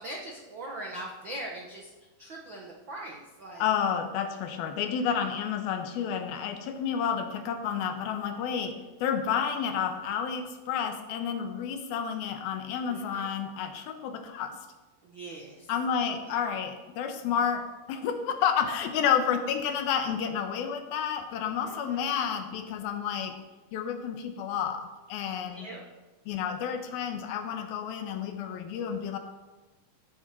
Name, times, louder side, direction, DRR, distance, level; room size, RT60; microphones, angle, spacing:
voice 1, 0.0-1.9 2.2-3.6 12.9-13.3 15.0-15.7 21.6-22.1 25.4-25.8, right 1 dB, 65° right, -2 dB, 1.1 m, -41 dB
voice 2, 3.6-14.6 15.7-23.4 23.7-25.7 26.3-29.2, left 7 dB, 80° left, 6 dB, 2.8 m, -30 dB
16.0 x 8.5 x 4.4 m, 1.2 s
omnidirectional pair, 4.4 m